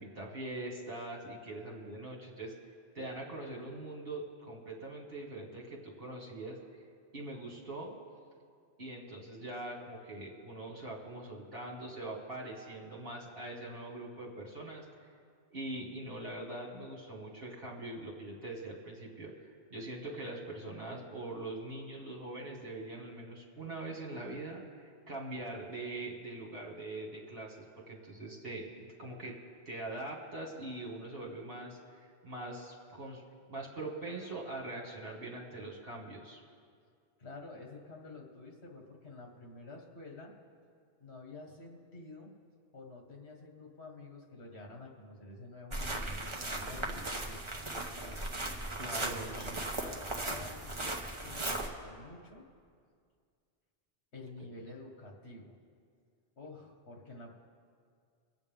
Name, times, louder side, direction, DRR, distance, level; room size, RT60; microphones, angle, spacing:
voice 1, 0.0-2.5 2.9-6.6 7.1-7.9 8.8-15.1 15.5-29.3 29.7-33.2 33.5-36.4 48.8-49.5, right 2 dB, 60° right, -2 dB, 2.2 m, -42 dB
voice 2, 37.2-40.3 41.0-42.3 42.7-47.4 47.7-48.2 49.0-52.4 54.1-55.6 56.4-57.3, left 2 dB, 70° left, 0 dB, 2.0 m, -49 dB
sound 1, 45.7-51.7, right 2 dB, 30° right, 1.1 m, -37 dB
25.0 x 8.3 x 3.6 m, 2.1 s
omnidirectional pair, 1.1 m